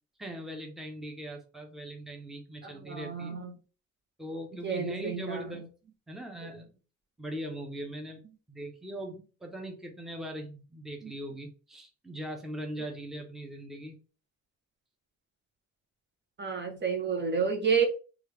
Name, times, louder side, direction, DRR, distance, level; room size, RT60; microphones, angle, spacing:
voice 1, 0.2-3.4 4.2-5.7 6.1-6.7 7.2-8.2 8.5-14.0, equal, ahead, 0.7 m, -40 dB
voice 2, 2.6-3.5 4.6-5.6 6.4-6.5 11.0-11.1 16.4-17.9, right 6 dB, 35° right, 0.8 m, -30 dB
3.1 x 2.4 x 3.2 m
cardioid pair, 90°, 30 cm